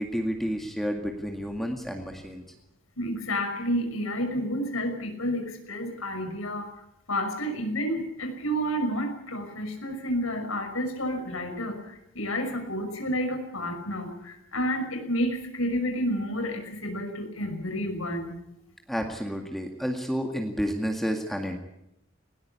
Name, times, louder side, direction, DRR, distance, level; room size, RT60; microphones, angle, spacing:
voice 1, 0.0-2.4 18.9-21.6, equal, ahead, 3 dB, 2.1 m, -30 dB
voice 2, 3.0-5.4 5.7-6.6 7.1-11.8 12.2-14.1 14.5-14.8 15.1-18.3, equal, 90° left, 6 dB, 5.8 m, -30 dB
19.5 x 19.0 x 8.4 m, 0.82 s
head